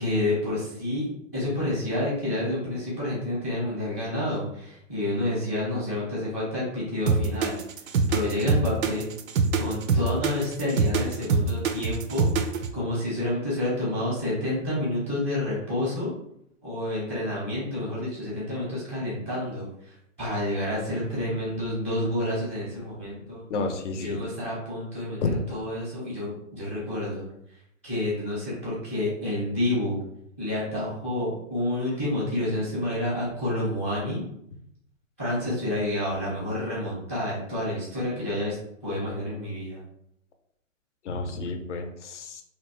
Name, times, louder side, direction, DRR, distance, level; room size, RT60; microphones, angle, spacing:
voice 1, 0.0-7.6 8.1-9.1 9.6-12.3 12.7-16.1 16.6-23.4 24.0-25.2 25.5-27.2 27.8-30.0 30.4-34.2 35.2-38.6 38.8-39.8, left 1 dB, 10° left, -7 dB, 0.3 m, -29 dB
sound 1, 7.1-12.7, right 5 dB, 90° right, 0.5 m, -24 dB
voice 2, 23.5-24.2 25.2-25.3 41.1-42.4, left 4 dB, 65° left, 6 dB, 0.6 m, -30 dB
2.8 x 2.1 x 2.9 m, 0.76 s
hypercardioid pair, 150°, 39 cm